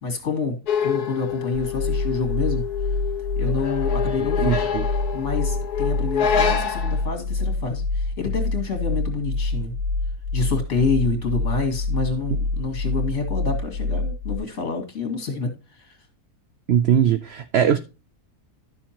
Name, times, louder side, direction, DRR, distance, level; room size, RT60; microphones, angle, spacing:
voice 1, 0.0-2.7 3.4-4.7 5.1-9.7 10.3-16.0, left 4 dB, 50° left, 2.5 m, -28 dB
sound 1, 0.7-7.0, left 7 dB, 80° left, 1.5 m, -26 dB
sound 2, 1.7-14.4, left 3 dB, 35° right, 1.8 m, -26 dB
voice 2, 4.4-4.9 16.7-17.8, right 9 dB, 65° right, 0.6 m, -20 dB
12.0 x 6.9 x 2.9 m
omnidirectional pair, 1.6 m